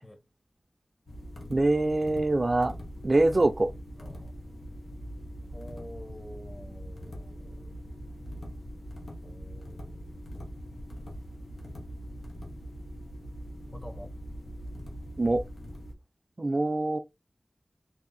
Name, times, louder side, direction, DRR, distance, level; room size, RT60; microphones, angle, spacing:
sound 1, 1.1-15.9, equal, 90° left, 1.0 m, -42 dB
voice 1, 1.5-2.7 3.0-3.7 15.2-15.4 16.4-17.0, right 2 dB, 45° right, 0.4 m, -24 dB
voice 2, 4.0-4.3 5.5-7.9 9.2-10.1 13.7-14.1, left 1 dB, 25° left, 1.2 m, -48 dB
3.4 x 2.6 x 4.0 m
wide cardioid pair, 60°, 0 cm